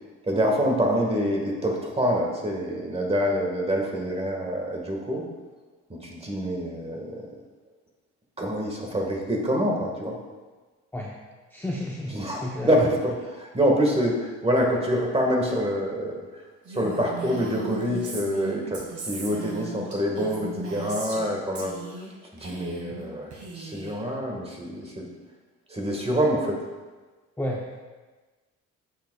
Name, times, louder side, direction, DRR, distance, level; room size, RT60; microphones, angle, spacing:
voice 1, 0.2-5.2 6.0-7.2 8.4-10.2 12.1-16.2 16.7-21.8 22.3-25.1 25.7-26.6, equal, 20° right, 0 dB, 1.5 m, -26 dB
voice 2, 11.5-12.7 27.4-27.8, left 1 dB, 5° left, -3 dB, 0.7 m, -32 dB
Female speech woman speaking, 16.7-21.3 21.6-22.1 22.4-23.0 23.3-24.0, right 3 dB, 70° right, 1.8 m, -37 dB
8.0 x 6.5 x 2.3 m, 1.3 s
cardioid pair, 90°, 30 cm